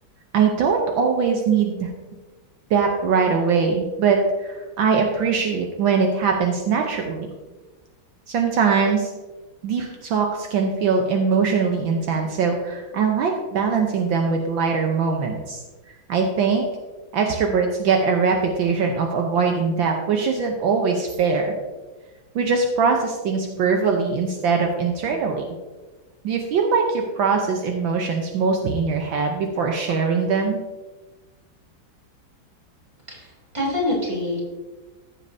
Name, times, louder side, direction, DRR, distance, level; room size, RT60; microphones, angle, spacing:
voice 1, 0.3-1.9 2.7-7.3 8.3-9.1 9.6-15.6 16.1-16.6 17.1-21.5 22.3-25.5 26.2-30.6, right 5 dB, 70° right, 2 dB, 1.6 m, -21 dB
voice 2, 33.1-34.4, left 1 dB, 15° right, -5 dB, 3.0 m, -26 dB
14.5 x 7.5 x 2.7 m, 1.2 s
omnidirectional pair, 2.2 m